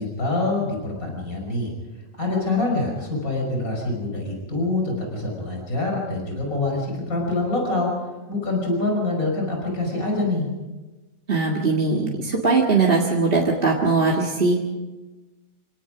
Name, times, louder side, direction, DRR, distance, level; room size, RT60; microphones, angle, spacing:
voice 1, 0.0-1.7 2.2-7.9 8.3-10.5, left 2 dB, 75° left, 0 dB, 6.2 m, -25 dB
voice 2, 11.3-14.6, right 3 dB, 40° right, -2 dB, 2.1 m, -20 dB
28.5 x 18.0 x 5.1 m, 1.2 s
omnidirectional pair, 1.5 m